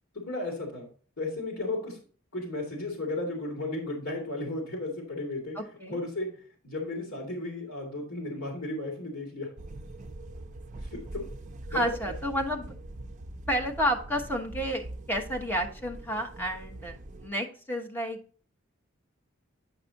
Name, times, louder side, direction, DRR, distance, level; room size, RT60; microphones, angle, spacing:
voice 1, 0.3-0.9 1.2-2.0 2.3-5.6 5.9-9.5 10.8-11.3 11.7-12.1, left 2 dB, 65° left, -1 dB, 2.3 m, -34 dB
voice 2, 5.5-6.0 11.7-12.7 13.5-18.2, equal, 10° left, 2 dB, 1.2 m, -31 dB
sound 1, 9.6-17.3, right 1 dB, 35° right, 0.5 m, -43 dB
9.8 x 5.9 x 2.8 m, 0.41 s
head